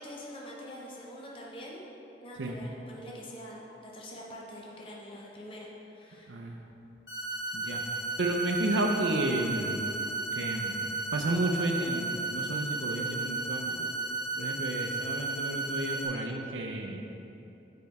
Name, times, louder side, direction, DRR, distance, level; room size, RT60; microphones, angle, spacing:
voice 1, 0.0-1.8 2.2-6.6, equal, 30° left, -3 dB, 0.7 m, -45 dB
sound 1, 7.1-16.1, right 3 dB, 65° left, 1.4 m, -34 dB
voice 2, 8.2-9.8 10.3-13.9 14.4-17.0, right 2 dB, 85° right, 3 dB, 0.5 m, -32 dB
6.6 x 4.6 x 4.1 m, 2.9 s
head